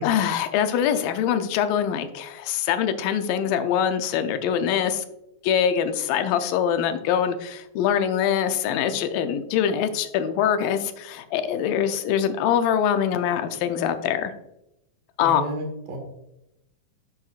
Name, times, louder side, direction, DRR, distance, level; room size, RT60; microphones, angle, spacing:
voice 1, 0.0-5.0 5.4-14.3 15.2-15.4, left 9 dB, 80° left, 8 dB, 2.4 m, -23 dB
voice 2, 15.2-16.0, right 2 dB, 90° right, 2 dB, 3.6 m, -32 dB
9.5 x 7.9 x 2.4 m, 0.85 s
omnidirectional pair, 4.0 m